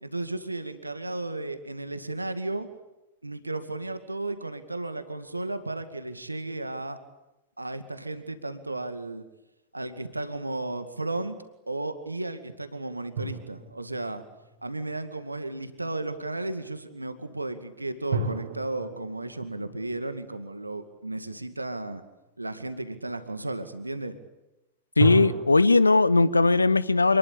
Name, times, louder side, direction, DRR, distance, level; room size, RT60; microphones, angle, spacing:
voice 1, 0.0-2.7 3.2-7.0 7.6-9.3 9.7-11.4 11.7-14.2 14.6-22.0 22.4-24.2, right 2 dB, 85° right, 10 dB, 2.1 m, -34 dB
sound 1, 13.1-15.1 18.1-21.4 25.0-25.4, right 3 dB, 65° right, 4.0 m, -33 dB
voice 2, 25.0-27.2, left 3 dB, 80° left, 19 dB, 0.9 m, -19 dB
27.5 x 21.0 x 8.7 m, 0.97 s
figure-of-eight pair, 90°, 0 cm